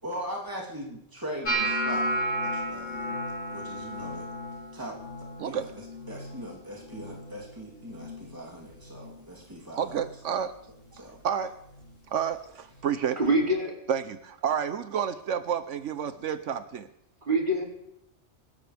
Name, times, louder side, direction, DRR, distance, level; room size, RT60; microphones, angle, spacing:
voice 1, 0.0-4.3 4.7-10.0 10.9-11.2, equal, 15° right, -3 dB, 3.2 m, -40 dB
sound 1, 1.4-7.5 7.8-8.3 8.7-9.2 9.9-10.1 11.8-11.9, right 1 dB, 75° left, 4.0 m, -33 dB
voice 2, 9.8-10.5 11.2-11.6 12.1-13.2 13.9-16.9, right 8 dB, 75° right, 11 dB, 1.1 m, -30 dB
voice 3, 13.2-13.7 17.3-17.6, right 1 dB, 40° right, 0 dB, 3.1 m, -24 dB
26.0 x 13.0 x 3.4 m, 0.78 s
omnidirectional pair, 1.3 m